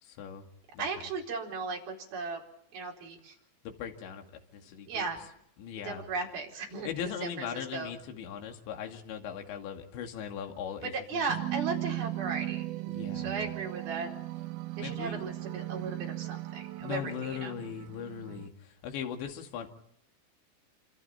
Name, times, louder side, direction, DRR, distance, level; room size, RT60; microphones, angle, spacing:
voice 1, 0.0-0.5 0.7-0.9 3.6-4.2 4.5-5.1 5.6-6.1 6.8-11.2 12.9-13.4 14.8-15.2 16.8-19.7, left 8 dB, 65° left, 4 dB, 4.3 m, -39 dB
voice 2, 0.8-2.4 2.7-3.3 4.9-5.3 5.8-6.9 7.2-7.9 10.9-12.6 13.1-14.1 14.8-17.5, right 4 dB, 50° right, 0 dB, 6.0 m, -36 dB
sound 1, 11.3-18.5, right 16 dB, 80° right, 3.5 m, -37 dB
27.5 x 27.0 x 4.4 m, 0.72 s
omnidirectional pair, 6.0 m